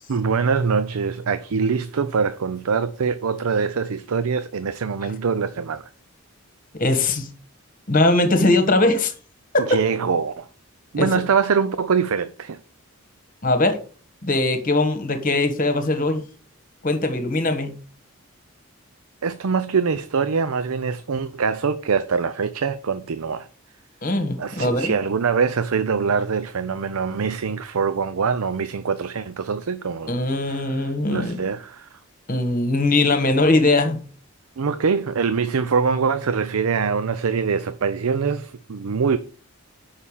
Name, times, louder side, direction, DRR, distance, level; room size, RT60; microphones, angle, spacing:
voice 1, 0.1-5.8 9.6-10.5 10.9-12.6 19.2-23.5 24.4-30.1 30.5-32.0 34.6-39.2, right 5 dB, 75° right, 0.5 m, -23 dB
voice 2, 6.7-7.3 7.9-9.1 9.5-9.6 11.0-11.1 13.4-13.8 14.2-16.2 16.8-17.7 24.0-24.9 30.1-31.4 32.3-34.0, left 2 dB, 35° left, 1.3 m, -20 dB
6.5 x 5.6 x 7.2 m
head